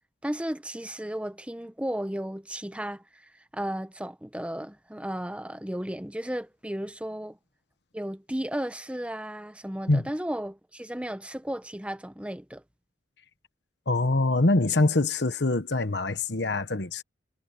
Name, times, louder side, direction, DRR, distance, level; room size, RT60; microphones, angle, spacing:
voice 1, 0.2-3.2 3.5-7.4 7.9-12.6, right 1 dB, 5° right, 0.8 m, -34 dB
voice 2, 13.9-17.0, left 2 dB, 60° left, 1.2 m, -24 dB
head